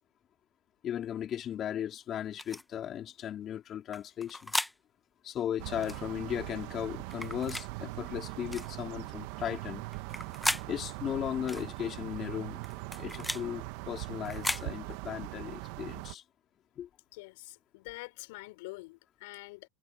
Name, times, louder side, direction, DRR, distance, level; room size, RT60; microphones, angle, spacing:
voice 1, 0.8-4.5 5.2-9.8 10.7-12.6 13.0-16.2 16.8-16.9, left 10 dB, 35° left, 4.3 m, -36 dB
sound 1, 2.4-2.6 3.9-4.7 5.8-6.0 7.1-7.7 8.5-8.7 9.9-10.7 11.5-11.7 12.6-13.4 14.2-14.7, left 1 dB, 5° left, 1.2 m, -35 dB
sound 2, 5.6-16.2, right 23 dB, 60° right, 1.8 m, -41 dB
voice 2, 17.1-19.7, left 24 dB, 65° left, 5.2 m, -46 dB
hypercardioid pair, 100°, 0 cm